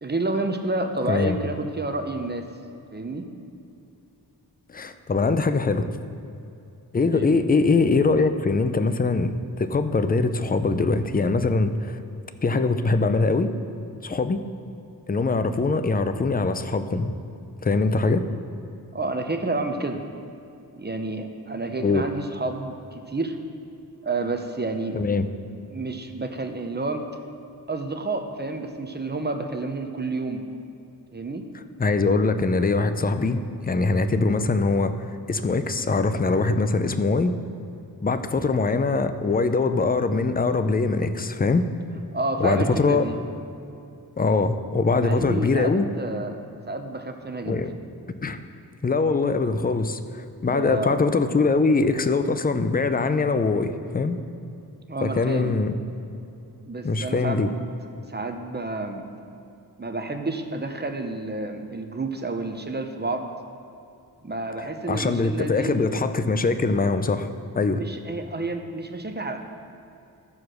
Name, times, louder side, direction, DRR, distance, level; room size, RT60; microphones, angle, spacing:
voice 1, 0.0-2.5 2.9-3.3 7.1-7.3 18.9-20.0 20.8-23.4 24.0-25.0 25.7-27.1 27.7-30.4 31.1-31.5 38.3-38.5 42.1-43.2 44.9-47.6 50.4-50.9 54.9-55.6 56.6-57.5 58.1-59.1 59.8-63.3 64.2-65.8 67.7-69.4, right 2 dB, 25° right, 5 dB, 0.9 m, -30 dB
voice 2, 4.7-5.9 6.9-12.0 12.4-13.5 14.0-14.4 15.1-17.1 17.6-18.3 21.8-22.0 24.9-25.3 31.8-34.9 35.3-37.4 38.0-41.6 42.4-43.0 44.2-45.9 47.4-47.8 48.2-48.4 48.8-54.2 55.0-55.7 56.8-57.5 64.9-67.3 67.5-67.8, left 3 dB, 25° left, 10 dB, 0.6 m, -22 dB
14.0 x 4.8 x 6.3 m, 2.7 s
cardioid pair, 70°, 39 cm